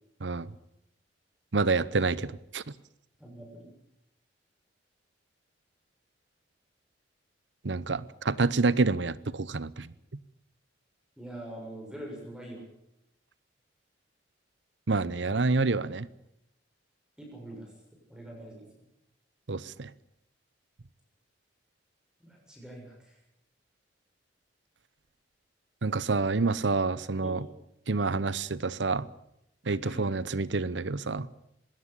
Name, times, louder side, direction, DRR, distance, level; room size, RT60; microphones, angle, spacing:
voice 1, 1.5-2.6 7.6-9.9 14.9-16.1 19.5-19.9 25.8-27.5 27.9-29.1 29.7-31.3, right 3 dB, 85° right, 0.9 m, -28 dB
voice 2, 3.2-3.7 11.2-12.6 17.2-17.7 18.1-18.7 22.2-23.1 27.2-27.4 29.8-30.1, right 1 dB, 5° right, 6.8 m, -44 dB
21.0 x 17.5 x 8.5 m
head